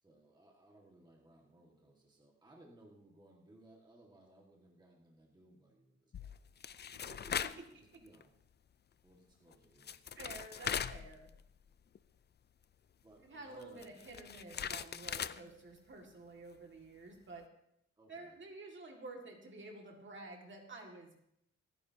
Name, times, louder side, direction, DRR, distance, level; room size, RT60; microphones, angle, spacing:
voice 1, 0.0-6.4 7.3-8.4 9.0-9.9 13.0-14.1 18.0-18.4, right 1 dB, 15° right, -1 dB, 1.8 m, -62 dB
sound 1, 6.1-7.7 8.1-8.2 9.5-9.6 9.8-11.7 11.9-12.0 13.6-15.4, left 8 dB, 35° left, 0.4 m, -40 dB
voice 2, 7.4-7.8 10.2-11.3 13.2-17.5 18.1-21.2, right 2 dB, 40° right, 2 dB, 2.1 m, -50 dB
26.5 x 9.7 x 2.8 m, 0.75 s
wide cardioid pair, 155°, 29 cm